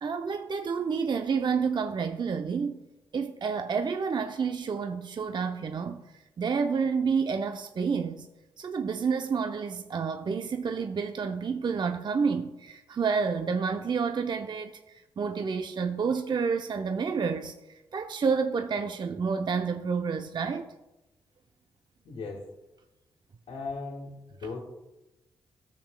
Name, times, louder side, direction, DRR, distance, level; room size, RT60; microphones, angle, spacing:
voice 1, 0.0-2.8 3.1-6.0 6.4-8.3 8.6-14.8 15.2-17.5 17.9-20.7, right 5 dB, 45° right, 0.5 m, -29 dB
voice 2, 22.0-22.4 23.5-24.6, left 4 dB, 75° left, 1.4 m, -37 dB
13.0 x 7.4 x 2.2 m
supercardioid pair, 45°, 10 cm